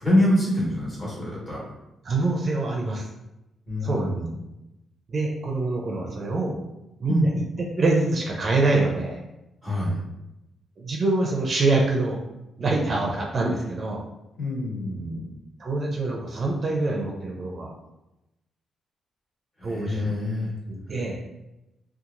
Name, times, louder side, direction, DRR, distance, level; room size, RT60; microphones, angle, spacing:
voice 1, 0.0-1.6 3.7-4.3 7.1-7.3 9.6-10.0 14.4-15.2 19.6-20.5, left 1 dB, 25° left, -7 dB, 1.4 m, -25 dB
voice 2, 2.0-3.1 3.8-4.2 5.1-6.6 7.0-7.3 7.8-9.2 10.8-12.2 12.6-14.0 15.6-17.7 19.6-20.1 20.7-21.2, right 2 dB, 40° right, -1 dB, 0.5 m, -25 dB
2.9 x 2.3 x 2.5 m, 0.93 s
cardioid pair, 105°, 0 cm